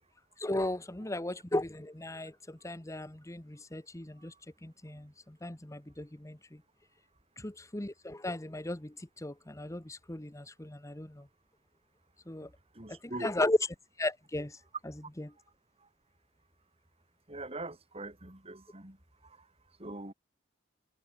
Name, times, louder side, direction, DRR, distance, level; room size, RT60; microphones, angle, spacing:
voice 1, 0.4-4.3 4.6-6.4 7.4-11.2 12.3-12.5 12.9-14.6 15.2-15.3, left 1 dB, 15° left, 1.2 m, -36 dB
voice 2, 12.4-13.3 17.3-19.0 19.2-19.4 19.8-20.1, right 2 dB, 30° right, 5.1 m, -43 dB
head